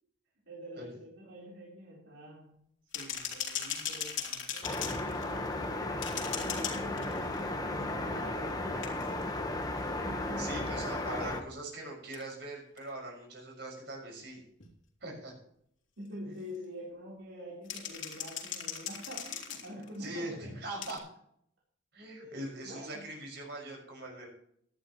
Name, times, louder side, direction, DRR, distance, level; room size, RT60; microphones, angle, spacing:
voice 1, 0.5-6.1 6.4-9.1 10.0-10.5 16.0-20.6 22.2-23.0, equal, 80° right, -6 dB, 4.3 m, -46 dB
sound 1, 2.9-5.6 6.0-7.5 8.8-9.2 12.1-12.2 12.8-12.9 14.6-14.7 17.7-20.1 20.8-21.0, left 8 dB, 90° left, 3.0 m, -38 dB
sound 2, 4.6-11.4, left 2 dB, 20° left, 1.4 m, -35 dB
voice 2, 10.4-14.4 15.0-15.3 16.2-16.3 20.0-21.0 21.9-24.3, right 1 dB, 60° right, 0 dB, 6.2 m, -41 dB
17.0 x 11.5 x 3.2 m, 0.69 s
head